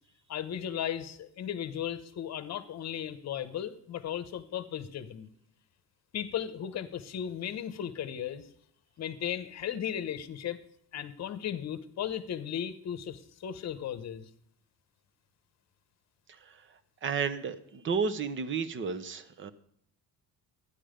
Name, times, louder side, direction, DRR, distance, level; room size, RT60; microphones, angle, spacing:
voice 1, 0.3-5.3 6.1-8.4 9.0-10.6 10.9-14.3, left 9 dB, 45° left, 13 dB, 1.0 m, -36 dB
voice 2, 17.0-19.5, right 5 dB, 30° right, 14 dB, 0.8 m, -32 dB
13.5 x 10.0 x 5.1 m, 0.68 s
cardioid pair, 180°, 38 cm